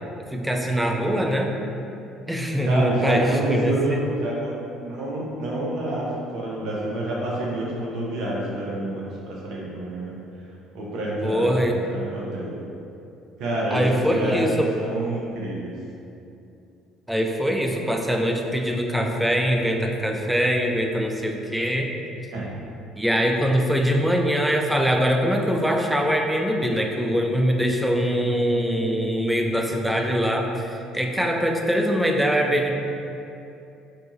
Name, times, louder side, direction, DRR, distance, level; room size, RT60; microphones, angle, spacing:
voice 1, 0.3-1.5 2.3-4.1 11.2-11.8 13.7-14.7 17.1-21.9 23.0-32.7, equal, 5° right, 2 dB, 0.3 m, -23 dB
voice 2, 2.6-4.5 4.8-10.1 10.7-12.6 13.4-15.7 22.3-22.5, right 1 dB, 65° right, -4 dB, 0.6 m, -28 dB
2.7 x 2.3 x 2.8 m, 2.7 s
hypercardioid pair, 60°, 0 cm